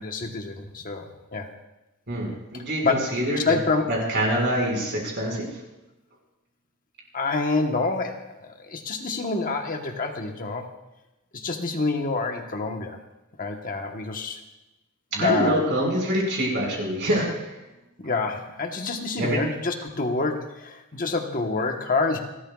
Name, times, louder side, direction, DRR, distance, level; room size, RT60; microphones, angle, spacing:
voice 1, 0.0-1.5 2.5-3.9 7.1-10.7 11.3-13.0 13.4-14.4 15.1-15.6 18.0-22.2, left 3 dB, 40° left, 3 dB, 1.2 m, -27 dB
voice 2, 2.1-3.6 3.9-5.5 15.1-17.6 19.2-19.4, right 1 dB, 55° right, -1 dB, 5.3 m, -25 dB
29.0 x 13.0 x 2.4 m, 0.98 s
head